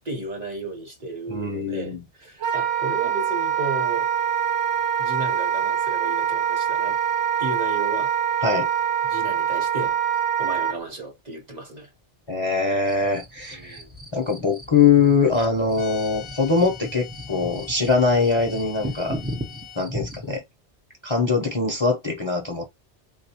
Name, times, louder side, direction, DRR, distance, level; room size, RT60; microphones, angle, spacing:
voice 1, 0.0-4.1 5.0-7.0 7.4-8.1 9.0-10.0 10.4-11.9 13.5-13.9, right 3 dB, 40° right, 1.0 m, -33 dB
voice 2, 1.3-2.0 8.4-8.7 12.3-13.8 14.1-19.2 19.8-20.4 21.0-22.7, left 4 dB, 30° left, 0.6 m, -22 dB
Wind instrument woodwind instrument, 2.4-10.8, right 8 dB, 90° right, 0.9 m, -24 dB
sound 1, 12.9-20.4, equal, 10° right, 0.5 m, -37 dB
sound 2, 15.7-19.8, left 10 dB, 60° left, 0.8 m, -43 dB
3.7 x 2.4 x 2.8 m
omnidirectional pair, 1.2 m